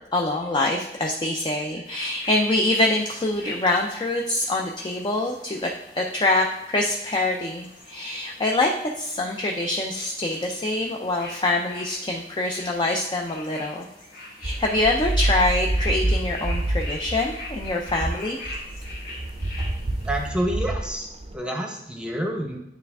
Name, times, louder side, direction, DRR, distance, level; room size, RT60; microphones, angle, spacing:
voice 1, 0.1-5.7 6.0-13.9 14.4-18.4, left 2 dB, 25° left, 1 dB, 0.4 m, -25 dB
sound 1, 1.8-20.3, left 2 dB, 60° left, 1.6 m, -42 dB
sound 2, 14.4-21.3, right 1 dB, 35° right, 0.5 m, -28 dB
voice 2, 20.1-22.6, right 1 dB, 5° right, 1 dB, 0.8 m, -28 dB
9.3 x 3.3 x 3.5 m, 0.88 s
head